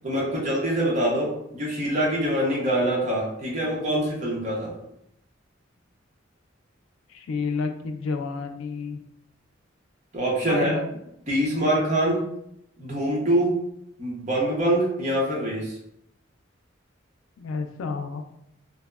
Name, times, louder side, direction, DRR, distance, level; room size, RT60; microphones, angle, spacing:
voice 1, 0.0-4.7 10.1-10.7 11.3-12.2 12.8-13.6 14.0-15.8, right 1 dB, 35° right, -4 dB, 0.7 m, -24 dB
voice 2, 7.1-9.0 10.5-11.0 17.4-18.2, left 4 dB, 80° left, 6 dB, 0.3 m, -30 dB
2.7 x 2.0 x 2.2 m, 0.76 s
head